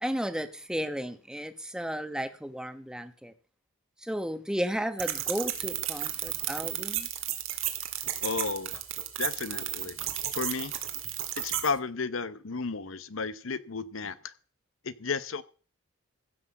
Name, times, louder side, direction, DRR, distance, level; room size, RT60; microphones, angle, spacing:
voice 1, 0.0-3.3 4.0-7.1, equal, 5° right, 1.0 m, -33 dB
sound 1, 5.0-11.7, right 12 dB, 80° right, 1.9 m, -33 dB
voice 2, 8.2-8.8 9.2-10.1 10.3-10.8 11.4-14.3 14.8-15.4, left 4 dB, 75° left, 0.9 m, -33 dB
15.5 x 6.1 x 7.1 m
head